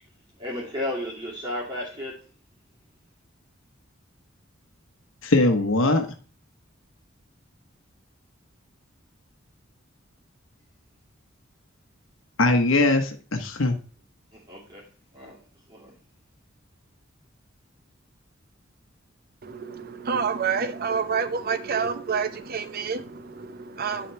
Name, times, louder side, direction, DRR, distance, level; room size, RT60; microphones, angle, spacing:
voice 1, 0.4-2.3 14.3-14.8 15.1-15.4 15.7-15.9, left 1 dB, 20° right, 2.5 m, -33 dB
voice 2, 5.2-6.1 12.4-13.8, left 2 dB, 75° left, 1.0 m, -21 dB
voice 3, 19.4-24.1, right 6 dB, 50° right, 0.7 m, -28 dB
10.0 x 3.9 x 4.4 m
head